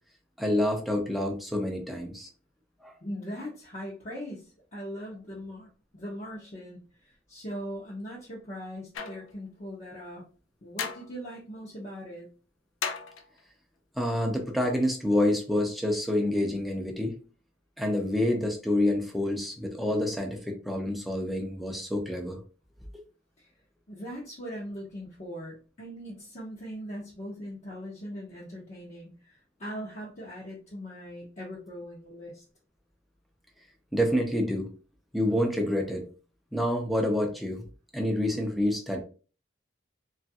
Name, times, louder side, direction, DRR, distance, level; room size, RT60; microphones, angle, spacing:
voice 1, 0.4-2.3 2.8-2.9 14.0-17.2 17.8-22.4 33.9-34.7 35.1-36.1 36.5-37.6 37.9-39.0, left 1 dB, ahead, 1 dB, 0.5 m, -27 dB
voice 2, 3.0-10.2 10.6-12.3 23.4-23.5 23.9-32.4, equal, 40° left, -5 dB, 0.7 m, -40 dB
sound 1, 8.9-9.3 10.8-11.1 12.8-13.4, left 6 dB, 85° left, 0.4 m, -34 dB
3.0 x 2.4 x 2.7 m, 0.37 s
head